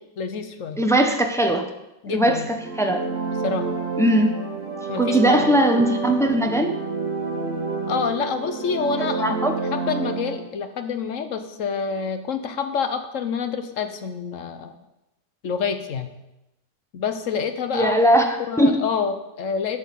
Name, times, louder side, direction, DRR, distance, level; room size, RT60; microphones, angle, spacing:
voice 1, 0.2-0.8 2.0-2.5 3.3-3.7 4.9-5.5 7.9-14.7 15.4-16.1 16.9-18.0 18.5-19.8, left 6 dB, 55° left, 9 dB, 1.1 m, -27 dB
voice 2, 0.8-1.6 2.1-2.4 2.8-3.0 4.0-4.3 5.0-6.8 9.0-9.6 17.7-18.8, right 1 dB, 5° left, 4 dB, 0.5 m, -19 dB
sound 1, 2.5-10.4, right 4 dB, 45° right, 1.8 m, -29 dB
9.2 x 6.3 x 8.3 m, 0.93 s
omnidirectional pair, 1.9 m